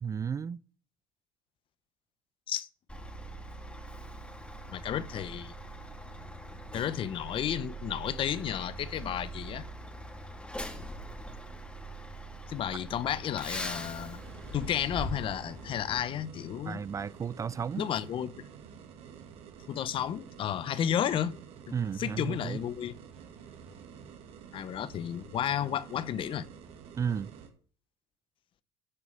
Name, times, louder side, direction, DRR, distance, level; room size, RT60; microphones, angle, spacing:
voice 1, 0.0-0.6 12.8-12.9 16.6-17.9 21.7-22.6 27.0-27.3, right 7 dB, 30° right, 0.4 m, -33 dB
Truck, 2.9-16.0, right 1 dB, 10° left, 1.9 m, -42 dB
voice 2, 4.7-5.5 6.7-9.6 12.5-14.2 14.5-16.8 17.8-18.4 19.7-21.4 22.0-22.9 24.5-26.5, left 10 dB, 50° left, 0.9 m, -32 dB
sound 1, 13.5-27.5, right 7 dB, 60° right, 2.2 m, -50 dB
9.6 x 6.1 x 7.4 m
supercardioid pair, 80°, 11 cm